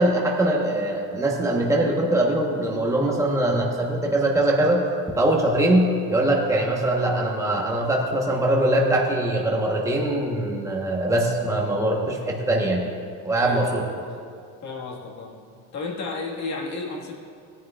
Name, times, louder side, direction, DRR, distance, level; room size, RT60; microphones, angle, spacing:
voice 1, 0.0-4.8 5.2-12.9 13.2-13.8, right 1 dB, 10° right, -1 dB, 1.2 m, -22 dB
voice 2, 14.6-15.4 15.7-17.1, left 3 dB, 50° left, -1 dB, 1.9 m, -32 dB
16.5 x 10.0 x 2.5 m, 2.3 s
cardioid pair, 115°, 36 cm